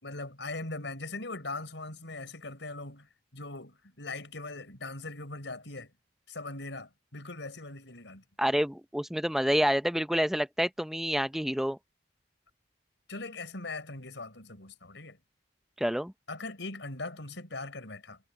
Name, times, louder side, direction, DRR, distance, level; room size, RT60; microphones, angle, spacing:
voice 1, 0.0-5.9 6.3-8.2 13.1-15.2 16.3-18.2, left 2 dB, 90° left, 4.6 m, -40 dB
voice 2, 8.4-11.8 15.8-16.1, equal, ahead, 0.5 m, -28 dB
head